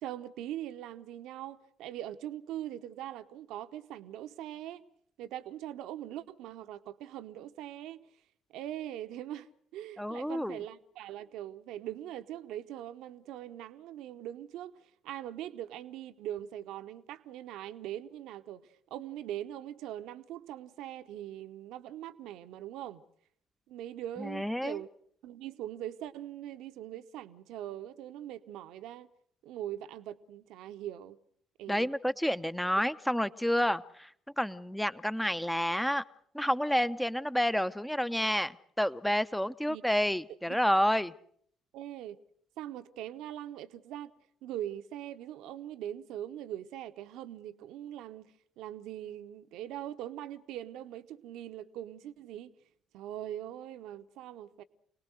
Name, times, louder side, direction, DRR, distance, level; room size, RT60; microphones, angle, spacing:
voice 1, 0.0-4.8 5.2-8.0 8.5-18.6 18.9-23.0 23.7-24.9 25.2-29.1 29.4-31.2 31.6-31.9 39.7-39.8 40.5-40.6 41.7-42.2 42.6-44.1 44.4-52.5 52.9-54.6, right 12 dB, 60° right, 12 dB, 0.9 m, -41 dB
voice 2, 10.0-10.6 24.2-24.8 31.7-34.1 34.4-36.0 36.3-41.1, equal, 5° left, 14 dB, 0.8 m, -29 dB
27.5 x 19.5 x 6.5 m, 0.64 s
figure-of-eight pair, 45°, 0 cm